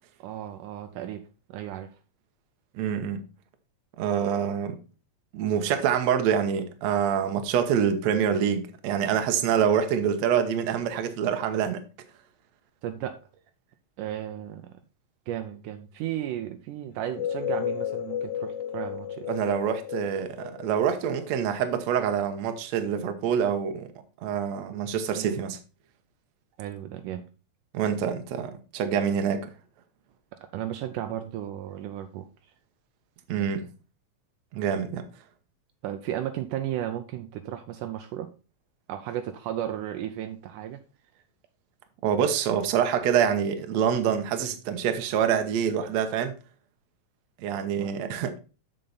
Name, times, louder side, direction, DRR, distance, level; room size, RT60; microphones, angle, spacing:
voice 1, 0.2-1.2 1.5-1.9 12.8-13.2 14.0-14.7 15.3-19.3 25.1-25.4 26.6-27.2 30.5-32.3 35.8-38.3 38.9-40.8 47.7-47.9, right 11 dB, 80° right, 2.1 m, -34 dB
voice 2, 2.8-3.2 4.0-4.8 5.3-11.8 19.3-23.9 24.2-25.6 27.7-29.5 33.3-33.7 34.5-35.1 42.0-46.3 47.4-48.4, right 8 dB, 65° right, 1.9 m, -26 dB
sound 1, 17.0-21.6, left 9 dB, 85° left, 2.4 m, -33 dB
7.5 x 6.7 x 4.1 m
omnidirectional pair, 3.9 m